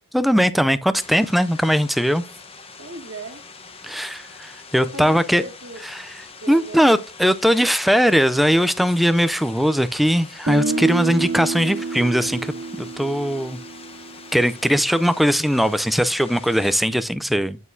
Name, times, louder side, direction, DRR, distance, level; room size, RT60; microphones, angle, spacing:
voice 1, 0.1-2.2 3.8-5.4 5.9-6.1 6.5-13.6 14.3-17.6, equal, ahead, 0.4 m, -20 dB
sound 1, 0.9-16.9, left 4 dB, 25° left, 1.0 m, -43 dB
voice 2, 2.8-3.4 4.8-5.8 6.4-7.0, right 2 dB, 65° right, 1.6 m, -36 dB
Guitar, 10.5-14.4, right 3 dB, 45° right, 0.7 m, -27 dB
9.0 x 6.4 x 2.7 m
head